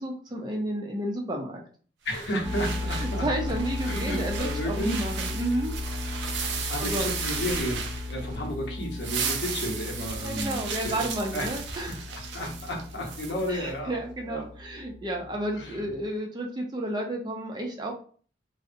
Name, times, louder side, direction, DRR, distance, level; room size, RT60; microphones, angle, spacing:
voice 1, 0.0-1.6 2.9-5.7 6.8-7.1 10.2-12.0 13.5-17.9, right 1 dB, 25° right, 1 dB, 0.4 m, -31 dB
voice 2, 2.0-3.2 3.9-5.0 6.4-11.5 12.3-14.0 14.3-14.4 15.6-15.8, equal, 80° left, 0 dB, 0.8 m, -32 dB
sound 1, 2.1-8.5 8.8-13.5, right 6 dB, 85° right, 0.4 m, -35 dB
sound 2, 2.4-16.0, left 2 dB, 45° left, 0.7 m, -36 dB
2.6 x 2.0 x 2.5 m, 0.43 s
head